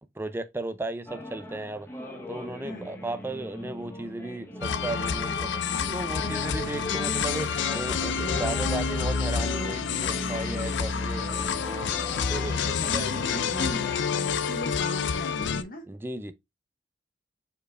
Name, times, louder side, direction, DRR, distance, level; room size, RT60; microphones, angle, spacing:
voice 1, 0.2-1.9 2.3-11.9 12.3-13.1 14.2-14.4 15.9-16.3, right 2 dB, 10° right, 0.4 m, -35 dB
sound 1, 1.1-13.9, equal, 15° left, 1.0 m, -39 dB
sound 2, 4.6-15.6, left 6 dB, 70° left, 0.4 m, -28 dB
voice 2, 12.6-15.8, left 1 dB, 50° left, 1.1 m, -38 dB
5.1 x 4.4 x 2.2 m
head